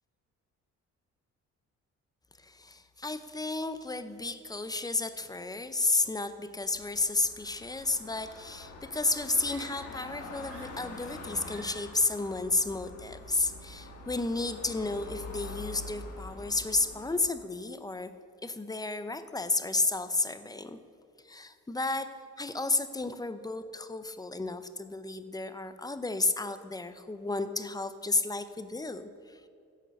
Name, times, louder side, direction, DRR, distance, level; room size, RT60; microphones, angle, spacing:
voice 1, 2.4-18.1 18.4-20.8 21.3-22.1 22.4-29.4, left 2 dB, 15° left, 11 dB, 0.6 m, -32 dB
sound 1, 6.6-17.3, left 3 dB, 55° left, 1.9 m, -45 dB
sound 2, 9.4-10.1 10.4-11.2 11.4-12.0, right 4 dB, 50° right, 1.9 m, -53 dB
10.0 x 6.7 x 6.5 m, 2.4 s
cardioid pair, 90°, 30 cm